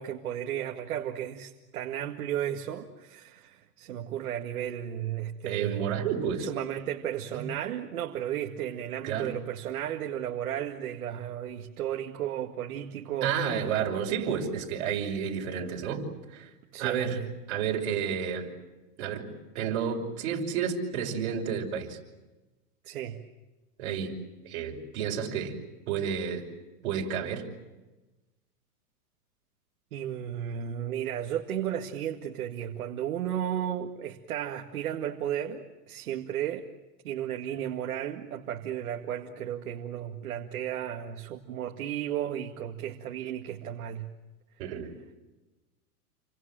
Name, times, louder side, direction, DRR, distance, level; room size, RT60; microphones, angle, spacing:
voice 1, 0.0-13.3 16.7-17.3 22.8-23.2 29.9-36.6 37.0-44.1, right 10 dB, 65° right, 3 dB, 2.1 m, -34 dB
voice 2, 5.5-6.5 7.3-7.5 9.0-9.3 13.2-16.5 16.8-17.2 17.5-18.5 19.0-22.0 23.8-24.1 24.4-25.6 25.9-26.5 26.8-27.5 44.6-44.9, right 7 dB, 45° right, 1 dB, 5.8 m, -31 dB
29.5 x 25.0 x 7.6 m, 1.1 s
supercardioid pair, 175°, 46 cm